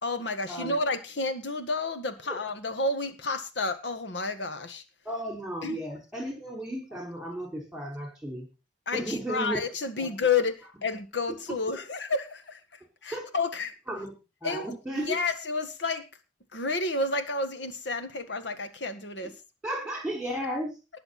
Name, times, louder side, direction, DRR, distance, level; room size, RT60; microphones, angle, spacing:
voice 1, 0.0-4.8 5.6-5.8 8.9-12.6 13.0-13.7 14.4-16.0 16.5-19.3, left 3 dB, 85° left, 9 dB, 1.6 m, -30 dB
voice 2, 5.0-8.4 8.9-9.6 10.0-10.1 11.3-11.4 13.1-13.3 13.9-14.1 14.4-15.2 19.2-19.3 19.6-20.7, right 1 dB, 5° right, 1 dB, 5.2 m, -34 dB
19.5 x 6.9 x 4.2 m, 0.30 s
head